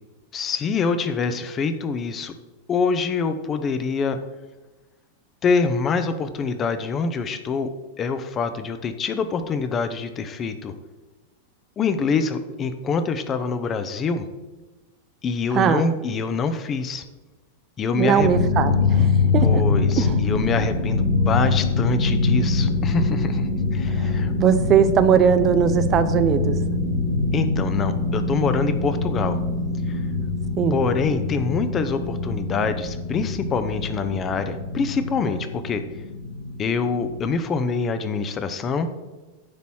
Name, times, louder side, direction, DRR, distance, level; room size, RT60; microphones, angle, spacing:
voice 1, 0.3-2.3 2.7-4.2 5.4-7.7 8.0-10.7 11.8-14.2 15.2-17.0 17.8-18.3 19.4-24.3 27.3-29.4 29.9-30.0 30.7-35.8 36.6-38.9, left 5 dB, 25° left, 9 dB, 0.8 m, -25 dB
voice 2, 17.9-19.6 20.0-20.2 24.0-24.1 24.4-26.5 30.6-30.8, right 8 dB, 30° right, 11 dB, 0.5 m, -20 dB
sound 1, 18.2-37.4, left 3 dB, 80° left, 3.1 m, -24 dB
9.8 x 4.2 x 6.2 m, 1.2 s
figure-of-eight pair, 90°, 0 cm